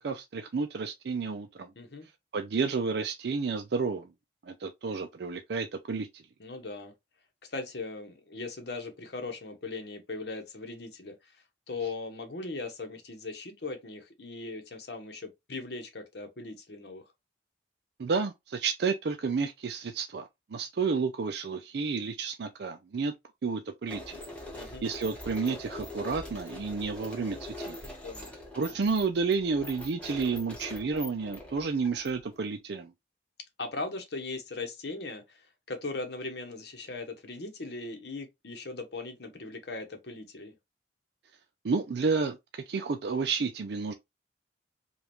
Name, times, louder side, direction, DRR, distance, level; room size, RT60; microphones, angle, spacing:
voice 1, 0.0-1.7 2.3-4.1 4.4-6.2 18.0-23.1 23.4-24.2 24.8-27.8 28.5-32.9 41.6-43.9, right 4 dB, 60° right, 0.4 m, -31 dB
voice 2, 1.8-2.1 6.4-6.9 7.5-17.0 24.5-24.9 28.0-28.3 33.6-40.6, left 3 dB, 60° left, 0.9 m, -39 dB
sound 1, 23.9-32.4, left 1 dB, 5° left, 1.1 m, -43 dB
5.2 x 2.4 x 3.0 m
head